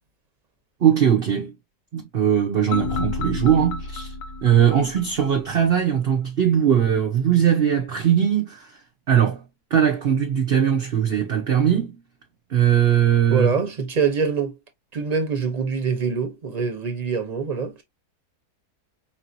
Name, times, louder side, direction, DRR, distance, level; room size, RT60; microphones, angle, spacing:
voice 1, 0.8-1.6 1.9-4.2 4.4-8.8 9.1-9.4 9.7-12.0 12.5-13.5, right 9 dB, 45° right, 0.9 m, -20 dB
sound 1, 2.7-5.8, left 4 dB, 80° left, 1.2 m, -31 dB
voice 2, 13.3-14.5 14.9-17.8, right 5 dB, 30° right, 1.1 m, -24 dB
5.1 x 2.9 x 2.7 m
omnidirectional pair, 1.7 m